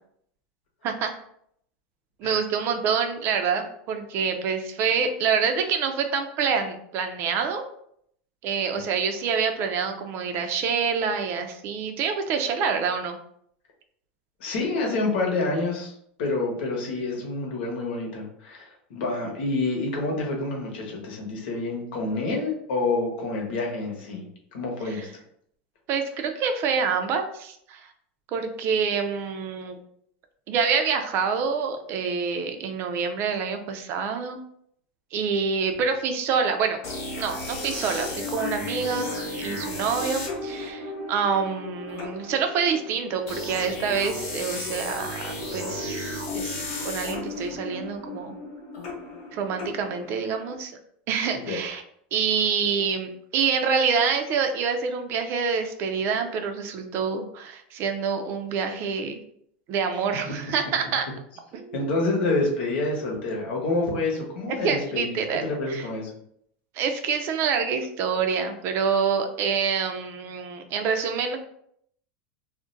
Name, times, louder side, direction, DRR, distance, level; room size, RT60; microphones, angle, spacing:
voice 1, 2.2-7.6 8.4-13.2 24.8-25.1 25.9-27.9 28.3-29.8 30.5-34.4 35.1-36.8 37.1-48.3 49.3-50.7 51.1-51.8 52.1-59.2 59.7-61.1 61.5-61.9 64.6-65.8 66.7-71.4, right 6 dB, 45° right, 6 dB, 0.4 m, -27 dB
voice 2, 14.4-15.9 16.2-24.3 24.5-25.2 51.5-51.6 61.7-65.1 65.4-66.1, left 2 dB, 75° left, 0 dB, 1.0 m, -28 dB
sound 1, 36.8-50.6, left 2 dB, 45° left, 0.9 m, -34 dB
2.4 x 2.1 x 3.8 m, 0.69 s
supercardioid pair, 135°, 6 cm